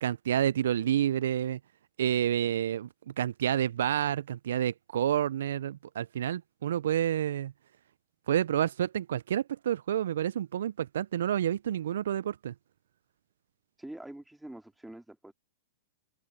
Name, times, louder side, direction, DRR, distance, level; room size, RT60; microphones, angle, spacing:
voice 1, 0.0-1.6 2.0-7.5 8.3-12.5, right 10 dB, 75° right, 0.3 m, -29 dB
voice 2, 13.8-15.3, right 1 dB, 5° right, 2.3 m, -45 dB
hypercardioid pair, 110°, 0 cm